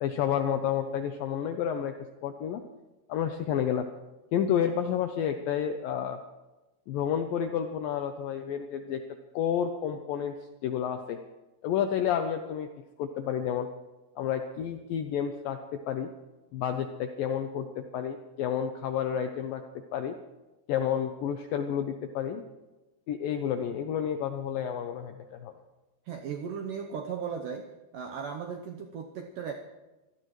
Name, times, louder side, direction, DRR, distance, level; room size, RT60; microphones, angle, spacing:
voice 1, 0.0-1.9 2.2-2.6 3.1-3.9 4.3-6.2 6.9-9.0 9.3-10.3 10.6-11.2 11.6-12.7 13.0-13.7 14.2-15.6 15.9-16.1 16.5-19.6 19.9-20.2 20.7-22.5 23.1-25.5, left 9 dB, 80° left, 7 dB, 2.0 m, -30 dB
voice 2, 26.1-27.7 27.9-29.5, right 7 dB, 80° right, 4 dB, 1.9 m, -36 dB
25.0 x 17.0 x 3.2 m, 1.1 s
omnidirectional pair, 5.0 m